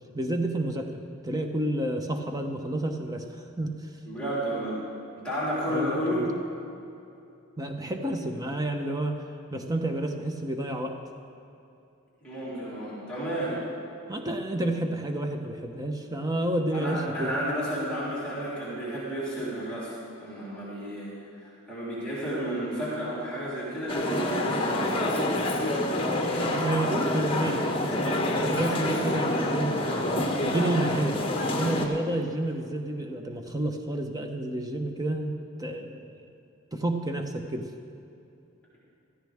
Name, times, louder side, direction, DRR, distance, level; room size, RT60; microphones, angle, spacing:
voice 1, 0.1-0.9 1.2-3.9 5.7-6.3 7.6-9.2 9.5-11.0 14.1-17.3 26.2-29.8 30.4-31.2 31.5-36.2 36.7-37.7, right 1 dB, 15° right, 4 dB, 0.8 m, -30 dB
voice 2, 4.1-4.8 5.2-6.3 12.2-13.6 16.7-21.1 21.4-25.2, equal, 5° left, -8 dB, 3.6 m, -32 dB
sound 1, 23.9-31.9, left 1 dB, 25° left, 1.2 m, -27 dB
17.0 x 14.0 x 3.5 m, 2.7 s
head